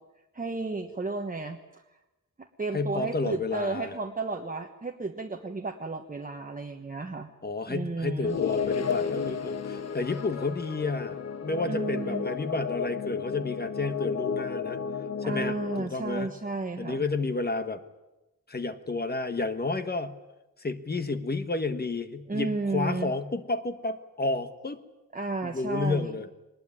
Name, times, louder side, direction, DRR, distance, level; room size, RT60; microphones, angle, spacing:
voice 1, 0.3-1.8 2.4-7.3 7.7-8.4 11.7-12.3 15.2-17.0 22.3-23.1 25.1-26.2, right 3 dB, 25° right, 3 dB, 1.3 m, -33 dB
voice 2, 2.7-3.9 7.4-14.8 15.3-16.3 16.8-17.8 18.5-20.2 20.6-24.8 25.4-26.3, left 3 dB, 30° left, 9 dB, 1.4 m, -31 dB
sound 1, 8.2-15.8, left 6 dB, 55° left, 1.2 m, -32 dB
22.5 x 20.0 x 9.8 m, 1.0 s
wide cardioid pair, 175°, 31 cm